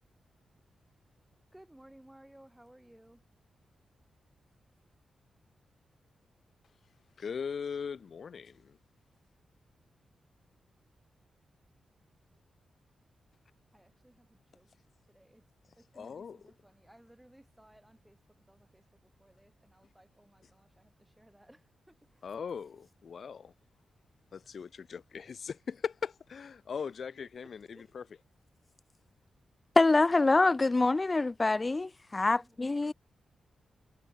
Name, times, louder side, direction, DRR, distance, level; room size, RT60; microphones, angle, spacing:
voice 1, 1.5-3.2 13.7-14.7 15.1-15.4 15.8-22.3 26.7-26.9 27.4-27.9 32.3-32.9, right 1 dB, 5° right, 5.8 m, -60 dB
voice 2, 7.2-8.8 15.9-16.4 22.2-23.5 24.3-28.2, left 6 dB, 45° left, 3.4 m, -39 dB
voice 3, 29.8-32.9, left 3 dB, 20° left, 0.8 m, -25 dB
wide cardioid pair, 180°, 0 cm